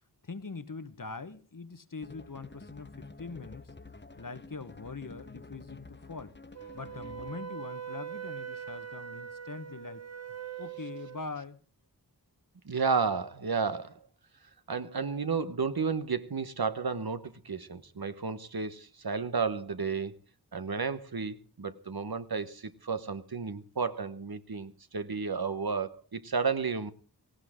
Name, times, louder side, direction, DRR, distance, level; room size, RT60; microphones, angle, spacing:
voice 1, 0.2-3.7 4.2-6.3 6.7-10.0 10.6-11.6, left 4 dB, 50° left, 1.2 m, -42 dB
sound 1, 2.0-7.5, left 3 dB, 25° left, 1.0 m, -49 dB
Wind instrument woodwind instrument, 6.5-11.3, right 9 dB, 40° right, 1.0 m, -42 dB
voice 2, 12.6-14.0 14.7-20.2 20.5-26.9, right 5 dB, 60° right, 1.1 m, -32 dB
18.0 x 16.5 x 3.6 m
wide cardioid pair, 40°, 41 cm